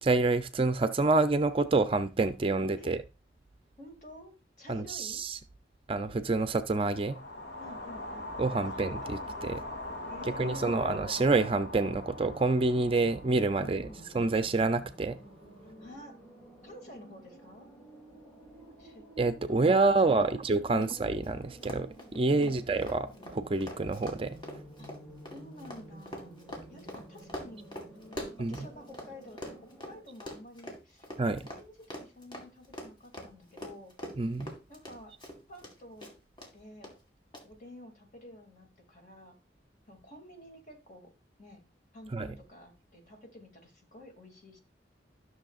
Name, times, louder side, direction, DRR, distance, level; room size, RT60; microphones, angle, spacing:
voice 1, 0.0-3.0 4.7-5.4 5.9-7.2 8.4-9.6 10.3-13.9 14.1-15.2 19.2-24.4 28.4-28.7 31.2-31.4 34.2-34.6 42.1-42.3, right 3 dB, 30° right, 0.5 m, -27 dB
voice 2, 3.8-5.2 7.6-8.3 8.6-9.3 10.1-10.9 13.5-14.1 15.6-16.1 16.6-17.7 18.8-19.1 19.5-19.6 20.2-20.4 22.4-22.7 24.8-24.9 25.3-26.3 26.7-27.6 28.2-33.9 34.7-35.1 35.5-36.1 36.5-37.0 37.4-39.4 39.9-41.1 41.4-41.6 41.9-44.6, left 1 dB, 45° left, 2.5 m, -50 dB
sound 1, 6.9-15.1, left 1 dB, 75° left, 2.5 m, -42 dB
Haunting Siren in the Distance, 10.1-30.0, right 1 dB, 10° left, 3.4 m, -52 dB
Run, 20.8-20.9 21.1-21.3 21.6-29.1 29.4-35.7 36.0-36.5 36.8-36.9 37.3-37.4, left 1 dB, 25° left, 2.1 m, -43 dB
13.0 x 6.4 x 2.5 m
head